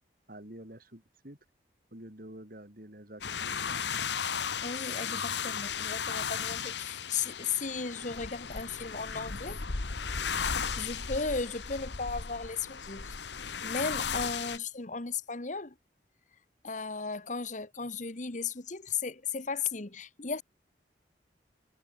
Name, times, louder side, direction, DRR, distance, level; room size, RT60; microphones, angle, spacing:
voice 1, 0.3-1.4 1.9-4.0, right 1 dB, 50° right, 3.9 m, -48 dB
sound 1, 3.2-14.6, left 6 dB, 70° left, 1.3 m, -35 dB
voice 2, 4.6-9.6 10.8-15.7 16.6-20.4, left 5 dB, 40° left, 1.3 m, -36 dB
head